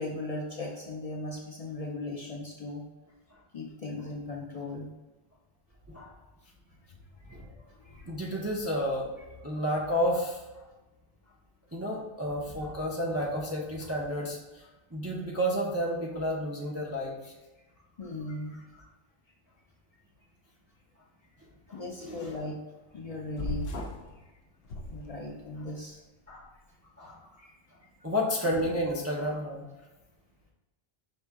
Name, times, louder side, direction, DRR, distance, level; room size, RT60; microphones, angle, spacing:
voice 1, 0.0-2.8 3.5-4.9 7.2-8.1 18.0-18.6 21.7-22.6 22.9-23.7 24.9-26.0 27.4-27.5, left 2 dB, 45° left, -1 dB, 0.5 m, -38 dB
voice 2, 8.1-9.1 9.4-10.4 11.7-14.7 14.9-17.3 21.7-22.4 26.3-26.4 27.0-27.2 28.0-29.6, equal, 20° right, -4 dB, 0.4 m, -31 dB
sound 1, 23.4-24.1 24.6-25.6, left 1 dB, 75° left, 0.8 m, -36 dB
5.3 x 2.7 x 3.4 m, 1.1 s
omnidirectional pair, 1.0 m